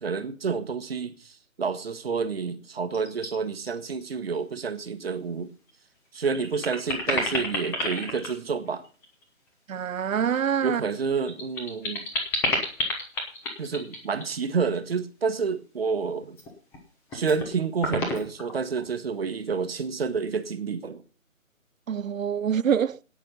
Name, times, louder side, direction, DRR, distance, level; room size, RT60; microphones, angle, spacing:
voice 1, 0.0-5.5 6.1-8.8 10.6-12.1 13.6-16.4 17.1-21.0, right 5 dB, 45° right, 1.4 m, -29 dB
sound 1, 2.9-3.3 3.7-4.0 4.3-4.4 5.7-5.8 6.2-9.2 10.8-14.3 16.2-16.8 17.1-17.5 17.8-18.9, left 1 dB, 5° left, 1.1 m, -30 dB
voice 2, 9.7-10.8 21.9-23.0, right 8 dB, 75° right, 0.6 m, -25 dB
18.0 x 6.5 x 5.4 m
figure-of-eight pair, 150°, 41 cm